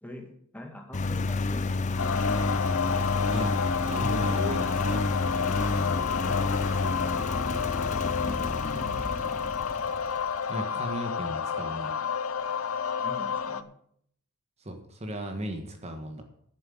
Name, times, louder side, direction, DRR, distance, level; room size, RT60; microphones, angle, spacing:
voice 1, 0.0-1.9 5.7-6.4 8.2-9.5 13.0-13.7, left 1 dB, 10° left, 2 dB, 2.0 m, -44 dB
Engine, 0.9-10.4, left 3 dB, 35° left, 0.5 m, -30 dB
sound 1, 2.0-13.6, left 6 dB, 75° left, 0.7 m, -30 dB
voice 2, 3.9-5.0 10.5-11.9 14.6-16.2, right 1 dB, 30° right, 5 dB, 1.5 m, -36 dB
11.0 x 7.7 x 7.7 m, 0.66 s
head